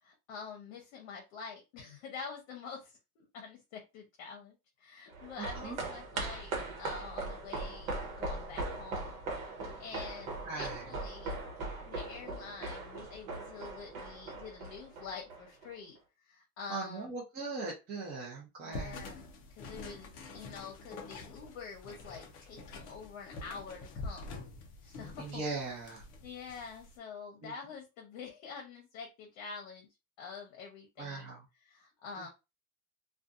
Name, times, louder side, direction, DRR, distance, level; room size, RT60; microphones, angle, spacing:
voice 1, 0.0-6.5 6.8-9.2 9.5-11.4 11.8-17.1 18.7-19.2 19.5-24.4 24.8-25.4 26.2-29.9 30.2-31.3 31.6-32.3, left 5 dB, 50° left, 1 dB, 0.8 m, -47 dB
sound 1, 5.1-15.7 16.0-16.1, right 2 dB, 75° right, 1.1 m, -40 dB
voice 2, 5.4-5.8 10.4-10.8 16.7-19.1 25.2-26.0 27.4-27.5 31.0-31.4 32.2-32.3, right 3 dB, 20° right, -4 dB, 0.6 m, -39 dB
sound 2, 18.7-26.9, left 3 dB, 25° left, 0.3 m, -46 dB
2.5 x 2.3 x 2.5 m, 0.26 s
supercardioid pair, 145°, 41 cm